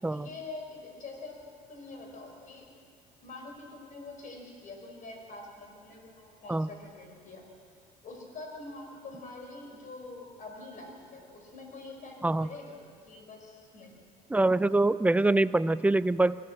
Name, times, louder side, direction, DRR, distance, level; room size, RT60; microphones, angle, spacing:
voice 1, 0.0-1.4 1.7-2.7 3.2-7.4 8.0-14.0, left 3 dB, 50° left, 2 dB, 5.4 m, -45 dB
voice 2, 14.3-16.4, right 2 dB, 10° right, 16 dB, 0.5 m, -24 dB
24.0 x 16.5 x 7.6 m, 2.1 s
cardioid pair, 110°, 17 cm